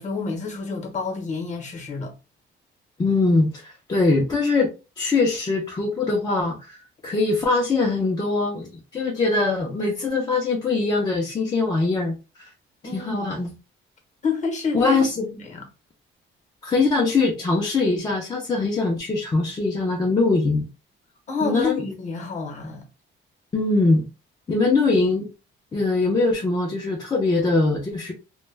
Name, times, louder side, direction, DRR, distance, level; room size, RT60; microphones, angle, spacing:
voice 1, 0.0-2.1 12.8-13.4 14.2-14.9 15.3-15.7 16.6-16.7 21.3-22.9, left 4 dB, 35° left, 0.8 m, -28 dB
voice 2, 3.0-6.8 7.0-12.2 12.9-13.5 14.7-15.3 16.6-20.7 21.4-21.8 23.5-24.1 24.5-25.3 25.7-28.1, left 3 dB, 20° left, 0.4 m, -22 dB
2.1 x 2.1 x 3.2 m
cardioid pair, 155°, 21 cm